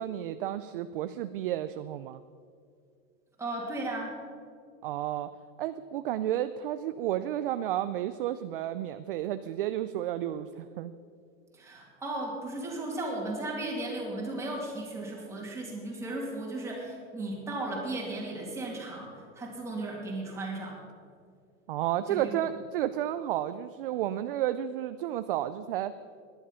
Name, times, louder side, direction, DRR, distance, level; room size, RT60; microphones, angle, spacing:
voice 1, 0.0-2.2 4.8-5.3 5.6-10.9 21.7-25.9, right 12 dB, 45° right, 11 dB, 0.4 m, -32 dB
voice 2, 3.4-4.1 11.5-20.8 22.1-22.3, right 2 dB, 5° right, -3 dB, 2.6 m, -35 dB
17.5 x 11.5 x 5.6 m, 2.2 s
supercardioid pair, 160°, 42 cm